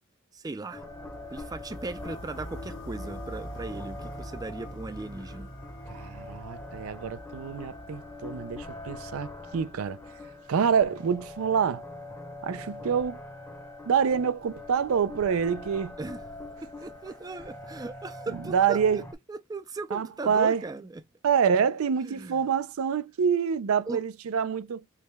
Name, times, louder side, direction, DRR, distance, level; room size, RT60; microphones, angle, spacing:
voice 1, 0.3-0.8 1.3-5.5 16.0-16.2 16.6-19.0 19.3-21.0 22.1-22.4 23.9-24.0, right 3 dB, 20° right, 0.3 m, -37 dB
sound 1, 0.7-19.1, left 1 dB, 15° left, 0.7 m, -43 dB
sound 2, 0.8-10.8, equal, 60° left, 1.0 m, -44 dB
voice 2, 5.9-10.0 10.5-11.8 12.4-13.2 13.9-15.9 18.5-19.0 19.9-20.6 21.2-24.8, right 7 dB, 85° right, 0.4 m, -26 dB
4.6 x 2.2 x 3.3 m
head